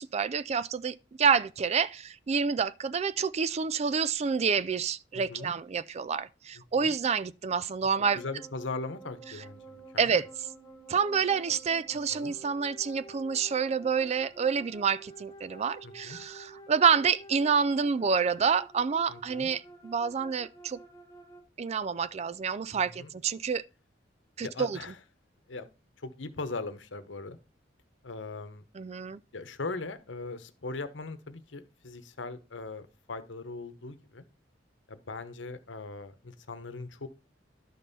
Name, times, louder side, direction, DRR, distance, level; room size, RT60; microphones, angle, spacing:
voice 1, 0.0-8.2 10.0-10.3 10.9-20.8 21.6-23.6 24.4-24.8 28.7-29.2, right 6 dB, 35° right, 0.4 m, -28 dB
voice 2, 5.1-5.5 6.8-6.9 8.2-10.2 12.1-12.3 15.8-16.2 19.1-19.5 22.7-23.1 24.4-25.0 25.5-25.7 26.0-27.4 28.0-28.6 29.3-34.2 34.9-37.1, left 3 dB, 85° left, 1.0 m, -40 dB
sound 1, 8.0-21.4, right 2 dB, 15° left, 1.4 m, -51 dB
11.5 x 5.4 x 4.2 m
head